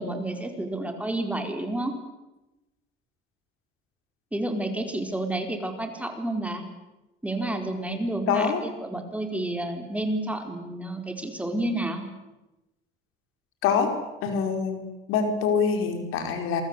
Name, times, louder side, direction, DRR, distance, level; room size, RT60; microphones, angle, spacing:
voice 1, 0.0-1.9 4.3-6.6 7.2-12.0, right 1 dB, 5° right, 5 dB, 4.5 m, -30 dB
voice 2, 8.3-8.6 13.6-13.9 14.2-14.8 15.1-16.6, left 6 dB, 80° left, 6 dB, 5.3 m, -24 dB
27.5 x 23.5 x 8.3 m, 1.0 s
cardioid pair, 120°, 21 cm